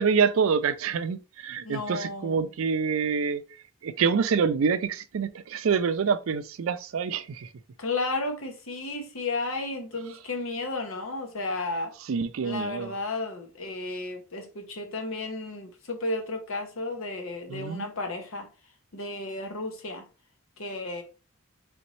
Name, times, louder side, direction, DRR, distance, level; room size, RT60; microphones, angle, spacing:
voice 1, 0.0-3.5 3.8-7.5 12.1-12.9 17.5-17.9, right 6 dB, 80° right, 0.4 m, -26 dB
voice 2, 1.6-2.5 7.8-12.0 12.4-18.5 18.9-20.1 20.6-21.0, left 2 dB, 85° left, 1.0 m, -33 dB
4.0 x 3.4 x 3.1 m
head